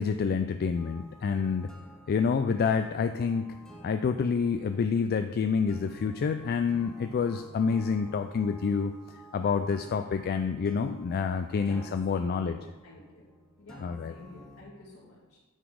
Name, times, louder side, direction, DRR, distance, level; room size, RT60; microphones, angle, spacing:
voice 1, 0.0-1.7 2.1-3.5 3.8-8.9 9.3-12.6 13.8-14.1, left 5 dB, 45° left, 8 dB, 0.3 m, -28 dB
sound 1, 0.7-14.6, left 1 dB, 5° left, 0.8 m, -52 dB
voice 2, 11.5-11.9 12.1-13.2 13.6-15.4, left 1 dB, 80° left, -9 dB, 2.1 m, -50 dB
9.0 x 4.1 x 4.7 m, 1.2 s
head